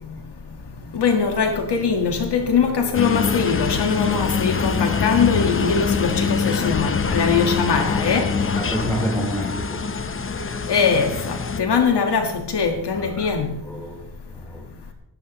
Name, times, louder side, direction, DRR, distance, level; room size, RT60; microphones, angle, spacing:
voice 1, 0.9-8.3 10.7-13.6, left 5 dB, 80° left, 1.7 m, -21 dB
Piano, 2.0-12.3, left 1 dB, 85° right, 2.3 m, -42 dB
sound 1, 2.9-11.6, left 5 dB, 30° left, 0.8 m, -24 dB
voice 2, 8.5-9.8 12.9-13.3 13.7-14.0 14.3-14.6, equal, 5° left, 7.2 m, -28 dB
19.0 x 15.5 x 3.1 m
wide cardioid pair, 145°, 40 cm